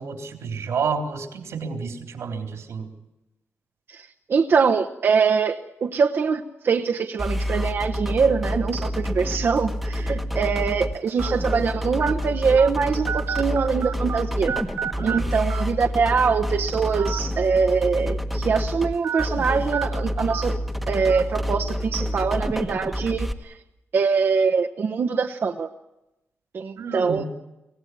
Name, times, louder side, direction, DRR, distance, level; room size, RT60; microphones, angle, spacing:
voice 1, 0.0-2.9 15.0-15.3 26.8-27.3, right 5 dB, 90° right, 4 dB, 3.7 m, -30 dB
voice 2, 4.3-14.5 15.0-20.5 20.9-23.5 23.9-25.7 26.5-27.2, right 5 dB, 50° right, 3 dB, 1.0 m, -23 dB
sound 1, 7.2-23.3, equal, ahead, 1.2 m, -28 dB
sound 2, 9.0-9.3 10.0-10.1 11.2-11.3 12.0-12.1 12.6-12.7 13.1-14.2 14.5-15.2 15.5-15.6 16.9-17.2 17.6-17.7 19.0-19.3 19.7-19.8 20.3-20.4 21.1-21.2, right 8 dB, 75° right, 2.5 m, -29 dB
24.5 x 18.0 x 9.4 m, 0.94 s
wide cardioid pair, 170°, 5 cm